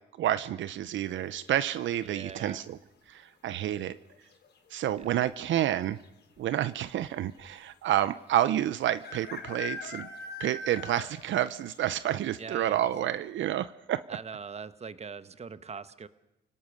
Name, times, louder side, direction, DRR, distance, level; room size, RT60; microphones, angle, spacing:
voice 1, 0.2-2.8 3.1-4.0 4.7-6.0 6.4-10.1 10.4-14.0, right 12 dB, 70° right, 15 dB, 0.7 m, -29 dB
sound 1, 1.5-2.0 3.8-4.2 4.4-4.5 4.7-5.3 6.0-6.1 6.4-6.5 8.0-8.1 9.0-11.3 11.7-11.8 12.3-12.4 12.8-12.9, left 5 dB, 60° left, 4.3 m, -41 dB
voice 2, 2.0-2.7 5.0-5.1 12.4-12.9 14.1-16.1, right 5 dB, 35° right, 14 dB, 1.2 m, -42 dB
29.5 x 18.0 x 6.4 m, 0.92 s
cardioid pair, 90°, 20 cm